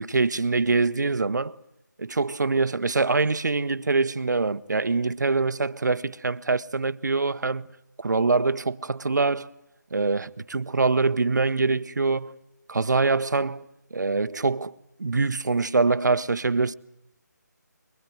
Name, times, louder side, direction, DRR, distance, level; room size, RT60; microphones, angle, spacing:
voice 1, 0.0-1.6 2.0-7.7 8.0-9.5 9.9-12.4 12.7-13.6 13.9-14.7 15.0-16.7, right 3 dB, 70° right, 1.0 m, -24 dB
24.5 x 22.5 x 9.3 m
figure-of-eight pair, 160°, 10 cm